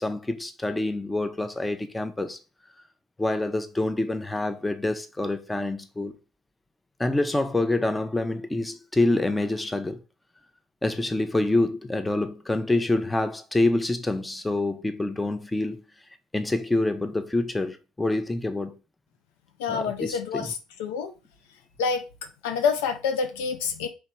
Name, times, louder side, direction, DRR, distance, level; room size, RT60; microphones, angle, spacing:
voice 1, 0.0-2.4 3.2-6.1 7.0-10.0 10.8-15.8 16.3-18.8 19.7-20.5, left 2 dB, 15° left, 0.7 m, -26 dB
voice 2, 19.6-21.1 21.8-22.0 22.4-23.9, left 5 dB, 75° left, 0.5 m, -27 dB
3.2 x 3.0 x 4.3 m
hypercardioid pair, 55°, 0 cm